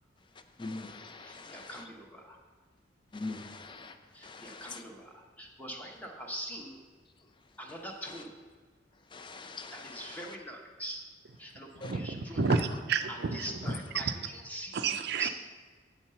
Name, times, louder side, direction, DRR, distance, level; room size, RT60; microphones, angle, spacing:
voice 1, 0.6-1.9 3.1-4.0 4.2-4.8 8.1-8.2 9.1-10.4 11.8-12.0 13.7-14.0, left 3 dB, 25° left, 8 dB, 0.5 m, -42 dB
voice 2, 1.2-2.4 4.1-6.8 7.6-8.3 9.7-11.0 11.4-12.5 13.1-14.8 15.2-15.3, equal, 10° left, 1 dB, 1.0 m, -43 dB
voice 3, 11.8-14.0 14.7-15.3, right 5 dB, 60° right, 8 dB, 0.5 m, -31 dB
8.5 x 4.4 x 6.8 m, 1.6 s
head